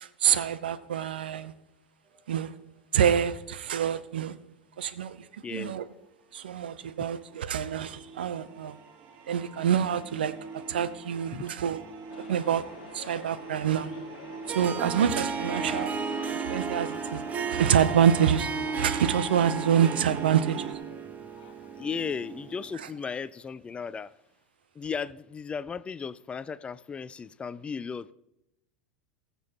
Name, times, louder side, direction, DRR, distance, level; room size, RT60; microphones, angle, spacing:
voice 1, 0.0-1.5 2.3-2.5 2.9-4.3 4.8-5.9 6.3-8.8 9.3-10.3 10.7-11.8 12.3-12.6 12.9-13.9 14.5-16.0 16.3-17.2 17.5-18.5 18.7-20.6, right 8 dB, 70° right, 0.7 m, -26 dB
sound 1, 2.1-2.4 7.0-20.8, right 4 dB, 45° right, 1.5 m, -42 dB
voice 2, 5.4-5.8 11.3-11.4 21.8-24.1 24.8-28.1, left 6 dB, 20° left, 0.4 m, -35 dB
sound 2, 12.1-23.0 23.4-23.5, left 9 dB, 60° left, 1.1 m, -49 dB
Harp, 14.5-22.9, right 6 dB, 25° right, 0.8 m, -34 dB
20.5 x 7.0 x 2.9 m
figure-of-eight pair, 85°, 6 cm